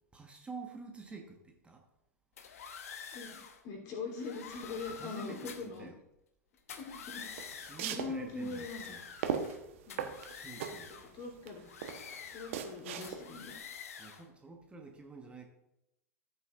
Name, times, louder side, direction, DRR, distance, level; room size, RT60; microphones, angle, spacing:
voice 1, 0.1-1.8 4.9-5.9 7.6-9.0 10.3-10.9 14.0-15.4, right 4 dB, 15° right, 3 dB, 1.3 m, -48 dB
sound 1, 2.4-3.6 4.1-5.8 6.6-7.9 8.3-9.6 9.9-11.1 11.6-12.7 13.0-14.3, left 7 dB, 65° left, 1.1 m, -48 dB
voice 2, 3.1-5.9 6.8-7.2 7.8-8.8 9.9-10.1 11.1-11.6 12.3-13.6, left 4 dB, 40° left, 0 dB, 3.2 m, -42 dB
sound 2, 7.2-13.5, right 8 dB, 55° right, 1.1 m, -39 dB
14.0 x 8.5 x 2.5 m, 0.86 s
figure-of-eight pair, 90°, 9 cm